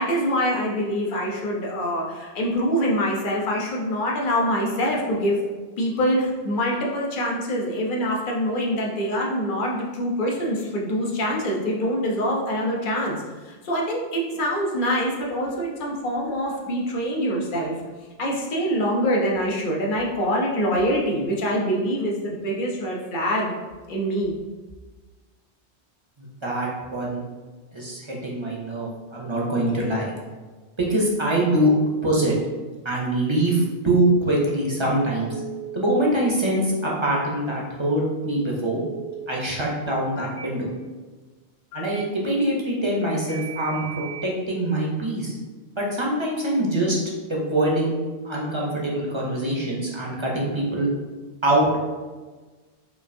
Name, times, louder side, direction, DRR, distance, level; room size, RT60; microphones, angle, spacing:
voice 1, 0.0-5.4 5.8-17.7 18.2-23.5 23.9-24.3, equal, 50° left, -2 dB, 0.8 m, -25 dB
voice 2, 26.2-27.3 27.7-30.1 30.8-31.7 32.0-32.4 32.8-35.4 35.7-38.8 39.3-40.7 41.7-45.3 45.8-47.0 47.3-47.9 48.2-50.9 51.4-51.9, right 1 dB, 30° right, -3 dB, 0.6 m, -24 dB
Telephone, 35.3-35.8 38.8-39.3 40.2-40.5 41.7-42.0 43.3-44.3, right 6 dB, 80° left, 0.9 m, -37 dB
5.1 x 2.5 x 2.6 m, 1.3 s
omnidirectional pair, 1.2 m